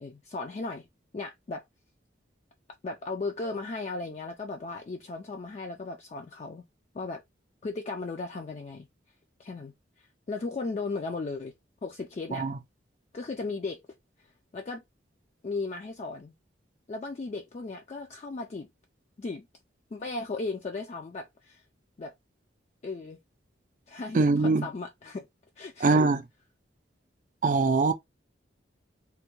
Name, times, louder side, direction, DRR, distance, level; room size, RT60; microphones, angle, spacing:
voice 1, 0.0-0.9 1.1-1.6 2.8-6.6 6.9-7.2 7.6-8.9 9.4-11.5 11.8-12.5 13.1-13.8 14.2-14.8 15.4-16.3 16.9-18.7 19.2-19.5 19.9-21.6 22.0-22.1 22.8-23.2 23.9-25.2 25.6-26.1, left 3 dB, 35° left, 0.3 m, -36 dB
voice 2, 24.1-24.7 25.8-26.2 27.4-27.9, right 3 dB, 45° right, 0.4 m, -22 dB
3.4 x 2.2 x 2.9 m
head